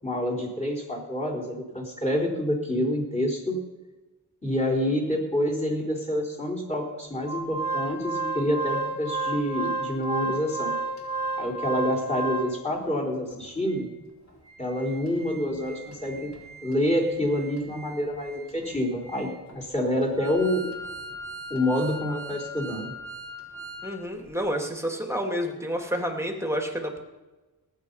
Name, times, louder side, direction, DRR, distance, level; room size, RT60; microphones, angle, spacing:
voice 1, 0.0-3.6 4.4-10.8 11.4-13.9 14.6-16.3 16.6-20.7 21.5-22.9, left 1 dB, 15° left, -1 dB, 4.2 m, -27 dB
Organ, 7.2-12.8 13.3-13.4 13.7-13.8 14.3-23.9 24.2-24.3, right 3 dB, 40° left, 4.6 m, -34 dB
voice 2, 23.8-27.0, equal, 5° right, 2 dB, 2.5 m, -29 dB
18.5 x 8.9 x 5.6 m, 1.1 s
wide cardioid pair, 45°, 41 cm